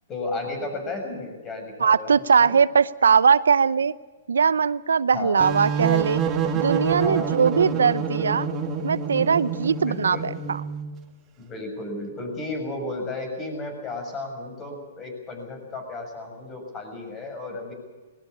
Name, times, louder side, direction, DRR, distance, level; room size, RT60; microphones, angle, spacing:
voice 1, 0.1-2.6 5.1-5.4 7.0-7.3 9.8-10.3 11.4-17.7, left 2 dB, 20° left, 5 dB, 7.0 m, -33 dB
voice 2, 1.8-3.9 4.3-6.2 6.5-8.5 8.8-10.6, right 6 dB, 85° right, 17 dB, 0.6 m, -20 dB
sound 1, 5.4-10.9, right 6 dB, 20° right, 2.4 m, -27 dB
20.0 x 18.5 x 8.6 m, 1.2 s
hypercardioid pair, 140°, 0 cm